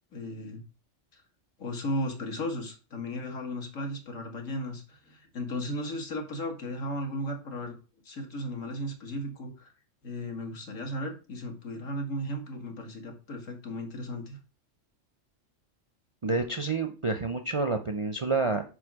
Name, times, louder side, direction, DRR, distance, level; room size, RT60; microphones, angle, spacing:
voice 1, 0.1-0.6 1.1-1.2 1.6-7.7 8.0-9.7 10.0-14.4, left 1 dB, 85° left, 3 dB, 2.0 m, -35 dB
voice 2, 16.2-18.6, right 3 dB, 45° right, 7 dB, 0.4 m, -28 dB
5.0 x 4.9 x 6.0 m, 0.34 s
omnidirectional pair, 1.3 m